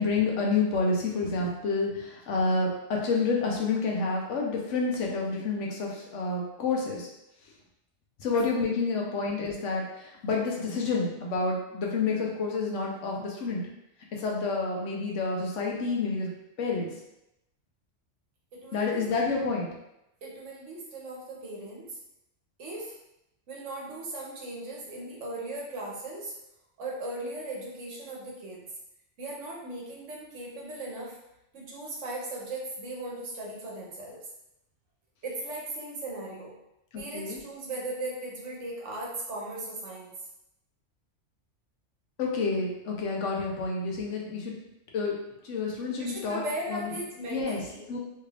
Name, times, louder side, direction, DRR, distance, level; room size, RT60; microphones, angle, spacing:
voice 1, 0.0-7.1 8.2-13.7 14.1-16.3 16.6-16.9 18.7-19.7 36.9-37.4 42.2-44.5 44.9-45.2 45.4-46.4 46.7-46.9 47.3-47.6 47.9-48.0, left 4 dB, 85° left, -1 dB, 1.1 m, -29 dB
voice 2, 18.5-19.0 20.2-22.0 22.6-23.0 23.5-26.4 26.8-28.7 29.2-31.2 31.5-34.2 35.2-36.5 37.0-40.1 46.0-47.9, right 2 dB, 80° right, -3 dB, 1.2 m, -38 dB
3.3 x 3.2 x 2.4 m, 0.86 s
omnidirectional pair, 1.2 m